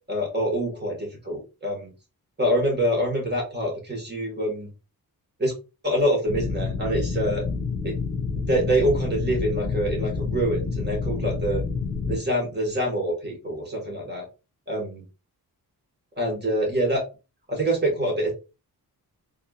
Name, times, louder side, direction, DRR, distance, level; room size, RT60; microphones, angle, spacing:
voice 1, 0.1-1.9 2.4-4.7 5.4-5.5 5.8-7.4 7.8-8.0 8.4-11.6 12.1-14.2 14.7-15.0 16.2-17.0 17.5-18.3, right 1 dB, 25° right, 0 dB, 1.9 m, -25 dB
sound 1, 6.3-12.2, left 4 dB, 40° left, 1.9 m, -28 dB
4.5 x 3.5 x 2.5 m, 0.29 s
wide cardioid pair, 120°, 38 cm